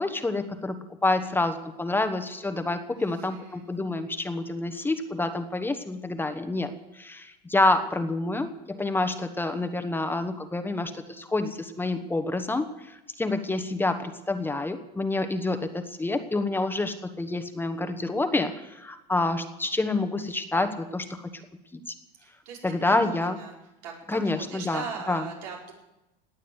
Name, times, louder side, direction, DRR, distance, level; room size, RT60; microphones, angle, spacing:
voice 1, 0.0-21.3 21.9-22.0 22.6-23.4 24.1-25.3, left 2 dB, 10° left, 8 dB, 1.1 m, -28 dB
voice 2, 2.9-3.6 22.2-22.6 22.8-23.5 23.8-25.7, right 6 dB, 90° right, -1 dB, 5.0 m, -40 dB
18.0 x 9.5 x 8.0 m, 0.94 s
supercardioid pair, 125°, 20 cm